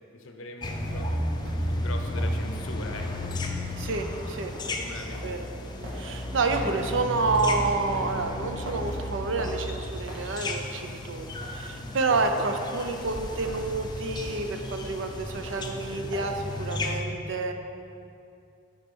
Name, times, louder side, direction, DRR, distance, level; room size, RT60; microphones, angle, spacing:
voice 1, 0.1-3.3 4.7-5.4 8.8-9.0 10.0-10.1 11.7-12.0 15.9-16.1, left 2 dB, 70° left, 4 dB, 0.8 m, -41 dB
sound 1, 0.6-17.0, left 1 dB, 20° left, 0.5 m, -33 dB
sound 2, 0.6-16.5, equal, 80° right, 1.6 m, -46 dB
voice 2, 3.8-4.5 5.2-5.5 5.9-17.5, right 3 dB, 65° right, 6 dB, 0.6 m, -29 dB
9.6 x 4.4 x 5.3 m, 2.6 s
head